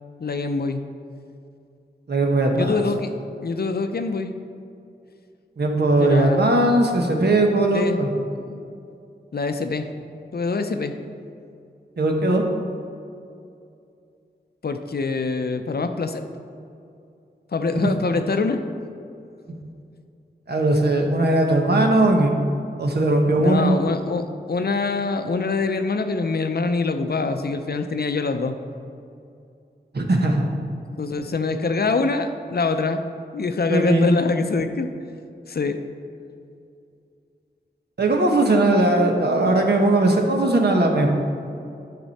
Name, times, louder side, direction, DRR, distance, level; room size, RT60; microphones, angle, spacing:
voice 1, 0.2-0.8 2.5-3.1 3.4-4.4 6.0-6.6 7.7-8.0 8.4-8.5 9.3-9.9 10.3-10.9 14.6-16.2 17.5-18.6 23.4-28.6 31.0-33.0 33.3-34.9 35.5-35.8, left 4 dB, 60° left, 8 dB, 0.6 m, -24 dB
voice 2, 2.1-2.8 5.6-8.1 12.0-12.4 17.8-18.2 20.5-22.4 22.8-23.8 29.9-30.5 33.7-34.1 38.0-41.1, right 2 dB, 65° right, 2 dB, 1.1 m, -19 dB
10.5 x 6.1 x 4.2 m, 2.5 s
wide cardioid pair, 85°, 18 cm